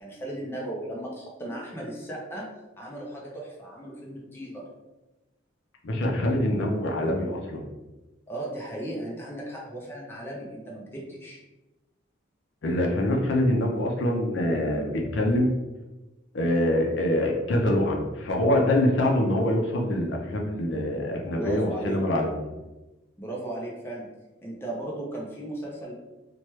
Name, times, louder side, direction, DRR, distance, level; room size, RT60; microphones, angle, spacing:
voice 1, 0.0-2.5 2.8-4.7 8.3-11.4 21.4-22.0 23.2-24.1 24.4-25.9, right 1 dB, 10° left, -3 dB, 0.5 m, -36 dB
voice 2, 5.8-7.6 12.6-15.5 16.3-22.5, left 1 dB, 65° left, 1 dB, 0.5 m, -25 dB
3.0 x 2.2 x 3.0 m, 1.1 s
head